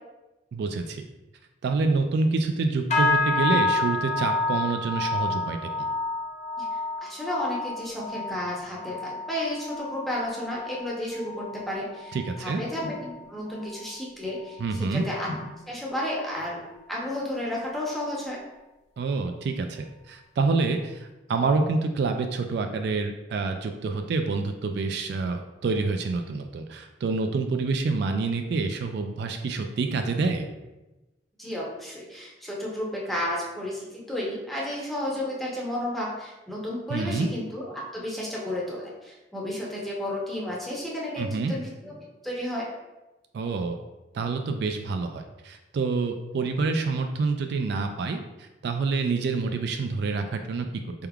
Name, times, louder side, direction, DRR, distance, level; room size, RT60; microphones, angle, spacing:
voice 1, 0.5-1.1 1.6-5.9 12.1-12.6 14.6-15.0 19.0-30.5 36.9-37.3 41.2-41.5 43.3-43.8 44.1-50.7, right 3 dB, 60° right, 5 dB, 0.3 m, -27 dB
sound 1, 2.9-12.5 12.8-13.2 13.6-13.9 14.5-14.6, left 2 dB, 40° left, 0.6 m, -29 dB
voice 2, 6.6-16.6 16.9-18.4 31.4-41.9 42.2-42.7, left 1 dB, ahead, -5 dB, 0.8 m, -32 dB
4.5 x 3.5 x 2.3 m, 1.0 s
head